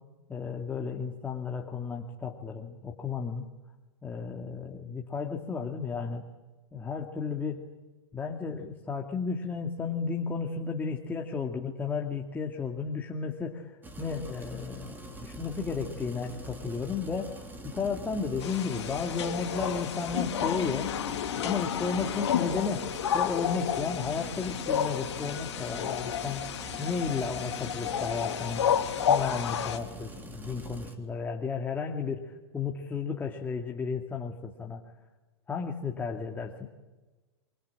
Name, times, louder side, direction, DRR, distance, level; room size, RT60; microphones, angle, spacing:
voice 1, 0.3-3.5 4.0-6.3 6.7-7.6 8.1-17.4 17.7-20.9 21.4-26.5 26.8-28.6 29.0-34.8 35.5-36.7, left 5 dB, 10° left, 1 dB, 2.4 m, -33 dB
sound 1, 13.8-30.9, right 1 dB, 10° right, 3.6 m, -44 dB
sound 2, 18.4-29.8, left 9 dB, 75° left, 3.0 m, -31 dB
26.5 x 25.0 x 8.7 m, 1.2 s
hypercardioid pair, 125°, 15 cm